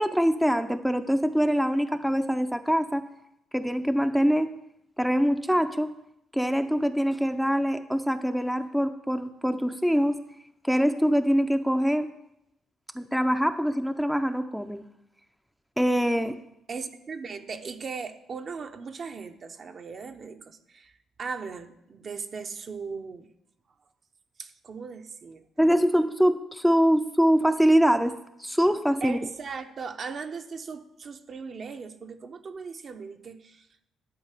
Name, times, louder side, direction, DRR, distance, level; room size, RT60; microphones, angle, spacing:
voice 1, 0.0-3.0 3.5-4.5 5.0-5.9 6.3-10.2 10.7-12.1 12.9-14.8 15.8-16.4 25.6-28.1 28.4-29.2, equal, ahead, 7 dB, 0.6 m, -24 dB
voice 2, 16.7-20.9 21.2-23.3 24.4-25.7 29.0-33.9, right 5 dB, 50° right, 7 dB, 0.8 m, -38 dB
11.5 x 4.7 x 8.2 m, 0.81 s
cardioid pair, 90°, 0 cm